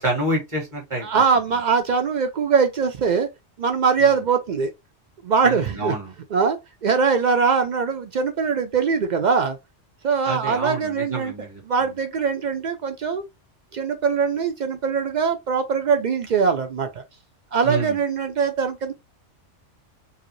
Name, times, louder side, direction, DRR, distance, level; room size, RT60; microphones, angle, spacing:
voice 1, 0.0-1.1 4.0-4.2 5.4-6.1 10.2-11.6 17.6-18.0, right 2 dB, 25° right, 1.8 m, -28 dB
voice 2, 1.0-3.3 3.6-4.7 5.2-5.9 6.3-9.6 10.0-11.3 11.7-13.2 13.7-17.0 17.5-18.9, right 5 dB, 70° right, 0.4 m, -22 dB
4.7 x 2.0 x 3.0 m
omnidirectional pair, 1.3 m